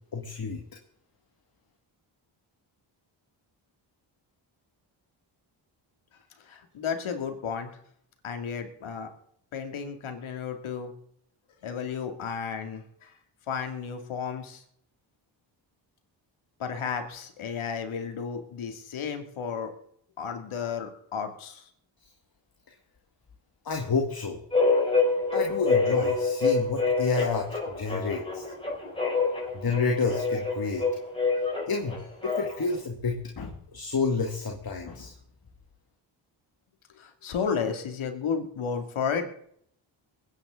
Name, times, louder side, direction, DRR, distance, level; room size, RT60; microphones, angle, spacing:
voice 1, 0.1-0.6 23.6-24.4 25.3-28.4 29.5-30.9 31.7-35.1, left 4 dB, 45° left, 2 dB, 2.2 m, -29 dB
voice 2, 6.5-7.7 8.2-9.1 9.5-10.9 11.6-13.1 13.5-14.6 16.6-19.7 20.2-21.6 37.0-39.2, left 6 dB, 75° left, 5 dB, 2.7 m, -33 dB
sound 1, 24.5-32.7, left 4 dB, 10° left, 6.2 m, -27 dB
21.5 x 9.8 x 3.9 m, 0.65 s
cardioid pair, 55°, 49 cm